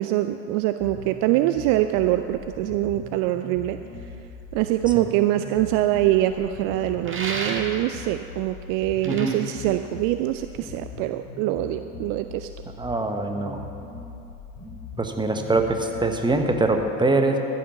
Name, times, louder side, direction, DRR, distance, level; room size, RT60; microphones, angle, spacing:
voice 1, 0.0-3.8 4.5-12.5, right 14 dB, 55° right, 10 dB, 0.5 m, -24 dB
sound 1, 0.8-16.8, left 4 dB, 75° left, 2.1 m, -41 dB
sound 2, 7.0-8.0 8.8-10.5, right 3 dB, 30° right, 1.7 m, -33 dB
voice 2, 9.0-9.4 12.8-13.6 15.0-17.4, right 2 dB, 10° right, 4 dB, 1.1 m, -23 dB
13.5 x 5.7 x 7.0 m, 2.8 s
figure-of-eight pair, 60°, 39 cm